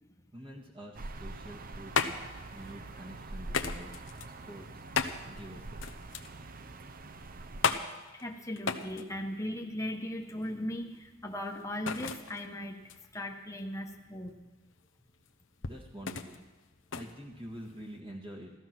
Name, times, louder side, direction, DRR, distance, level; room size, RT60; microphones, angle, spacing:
voice 1, 0.3-3.9 4.3-4.9 5.3-5.8 15.6-16.4 16.9-18.5, equal, 30° right, -1 dB, 1.8 m, -47 dB
sound 1, 0.9-7.7, right 2 dB, 45° right, 0.7 m, -44 dB
sound 2, 1.4-18.0, left 5 dB, 75° left, 0.9 m, -37 dB
voice 2, 8.1-12.8 13.1-14.4, left 1 dB, 15° left, 2 dB, 1.3 m, -38 dB
15.0 x 14.0 x 6.0 m, 1.2 s
head